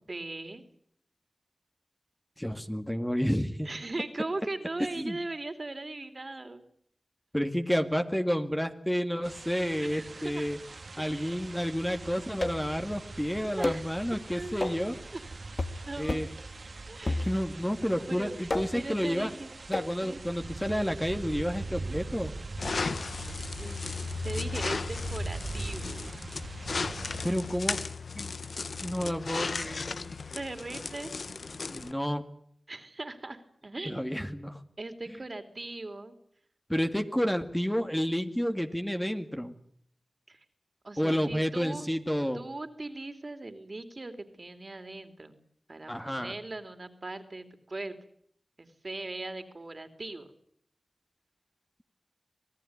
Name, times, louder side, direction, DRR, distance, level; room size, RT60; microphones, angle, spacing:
voice 1, 0.1-0.6 3.6-6.6 9.8-10.5 11.0-11.5 13.6-14.5 15.1-15.5 15.8-16.2 16.9-17.3 18.1-19.5 20.0-20.2 23.6-24.0 24.2-26.2 27.7-27.9 30.3-31.1 32.7-34.2 34.8-36.1 40.3-40.4 40.8-41.9 42.3-45.4 45.7-47.9 48.6-50.3, right 2 dB, 50° right, 9 dB, 3.3 m, -39 dB
voice 2, 2.4-3.7 5.0-5.2 7.3-10.6 11.0-15.0 16.0-16.3 17.1-19.3 19.7-22.3 27.2-27.8 28.2-28.3 28.8-30.2 31.7-32.2 33.9-34.6 36.7-39.6 41.0-42.4 45.9-46.3, equal, 5° left, 6 dB, 2.1 m, -30 dB
sound 1, 9.2-27.3, right 3 dB, 65° right, 2.2 m, -42 dB
sound 2, 12.4-12.8 13.6-13.9 14.6-14.9 15.6-15.8 16.1-16.4 17.1-17.6 18.5-18.9 19.7-20.0, left 2 dB, 50° left, 1.7 m, -32 dB
sound 3, 22.6-31.9, left 4 dB, 75° left, 1.1 m, -35 dB
26.5 x 18.0 x 9.8 m, 0.67 s
cardioid pair, 45°, 0 cm